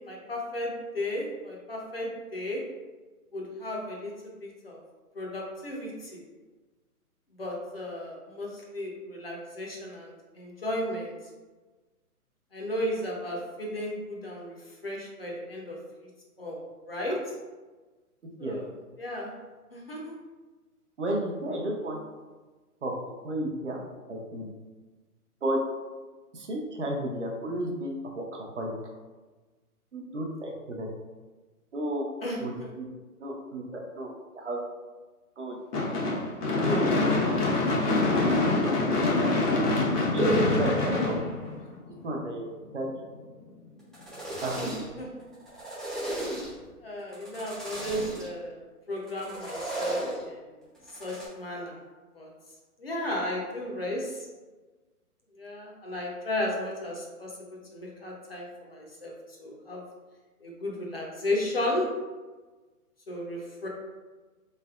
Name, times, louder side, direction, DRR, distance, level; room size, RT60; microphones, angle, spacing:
voice 1, 0.0-2.6 3.3-4.8 5.1-6.2 7.4-11.1 12.5-14.6 14.8-15.8 16.4-17.2 18.4-18.7 19.0-19.3 19.7-20.1 32.2-32.7 44.6-45.3 46.8-50.5 50.9-51.7 52.1-52.3 52.8-54.3 55.4-57.3 57.7-59.8 60.4-61.9 63.1-63.7, left 1 dB, 40° left, -2 dB, 0.6 m, -34 dB
voice 2, 21.0-22.0 22.8-22.9 23.2-23.8 24.1-24.5 25.4-25.6 26.3-28.2 28.6-28.7 29.9-30.9 31.7-32.1 32.4-32.8 33.2-34.6 35.4-35.6 36.6-36.8 37.2-37.4 37.7-37.9 38.3-38.4 40.1-41.2 42.0-42.5 42.7-42.9 44.4-44.6, right 1 dB, 50° right, 0 dB, 0.6 m, -32 dB
Gunshot gunfire / Fireworks, 35.7-42.0, left 2 dB, 85° left, 1.1 m, -25 dB
sound 1, 43.8-45.0 45.3-46.7 47.1-48.3 49.1-50.2 50.8-51.2, right 1 dB, ahead, 0.3 m, -35 dB
3.7 x 3.3 x 2.3 m, 1.3 s
hypercardioid pair, 170°, 46 cm